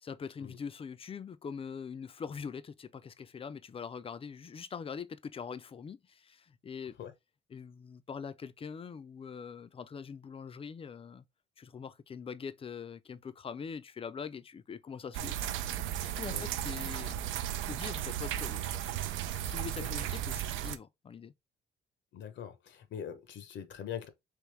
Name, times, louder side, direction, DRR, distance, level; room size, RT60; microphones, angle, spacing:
voice 1, 0.0-7.0 7.5-11.2 11.6-15.5 16.0-17.2 17.6-21.3, left 6 dB, 30° left, 0.4 m, -43 dB
sound 1, 15.1-20.8, right 11 dB, 85° right, 0.4 m, -35 dB
voice 2, 22.1-24.1, left 9 dB, 65° left, 0.7 m, -42 dB
3.5 x 3.0 x 3.1 m
cardioid pair, 90°, 20 cm